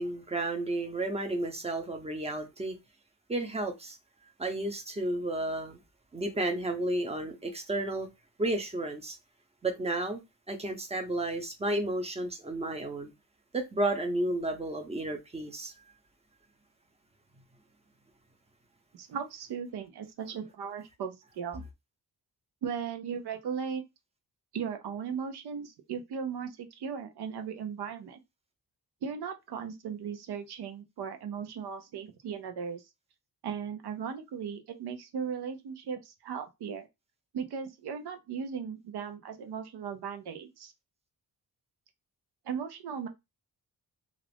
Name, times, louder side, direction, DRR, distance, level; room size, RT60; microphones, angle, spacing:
voice 1, 0.0-2.8 3.3-4.0 4.4-5.8 6.1-8.1 8.4-9.2 9.6-10.2 10.5-13.1 13.5-15.7, right 2 dB, 15° right, 0.6 m, -32 dB
voice 2, 18.9-21.6 22.6-23.8 24.5-28.2 29.0-32.8 33.4-36.9 37.3-40.7 42.4-43.1, right 7 dB, 85° right, 0.7 m, -37 dB
2.5 x 2.4 x 3.3 m
wide cardioid pair, 125°, 38 cm